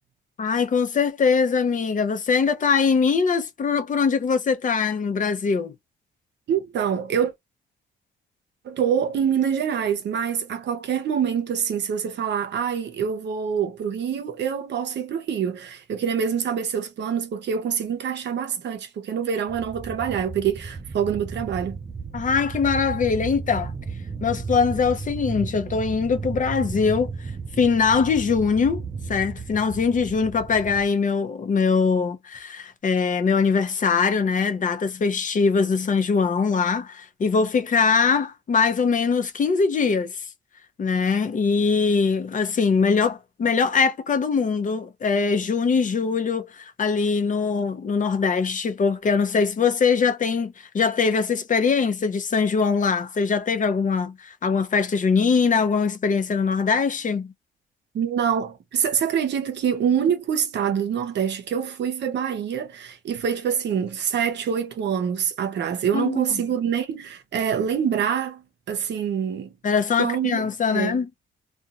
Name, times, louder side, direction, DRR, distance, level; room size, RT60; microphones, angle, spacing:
voice 1, 0.4-5.7 22.1-23.7 24.2-27.1 27.6-28.8 29.1-40.1 40.8-57.3 65.9-66.2 69.6-71.1, left 5 dB, 40° left, 0.6 m, -22 dB
voice 2, 6.5-7.3 8.6-21.8 57.9-68.4 68.7-69.5 70.0-70.4 70.7-71.0, right 8 dB, 60° right, 0.7 m, -25 dB
sound 1, 19.5-30.9, right 5 dB, 20° right, 0.3 m, -34 dB
2.8 x 2.2 x 2.4 m
cardioid pair, 90°, 20 cm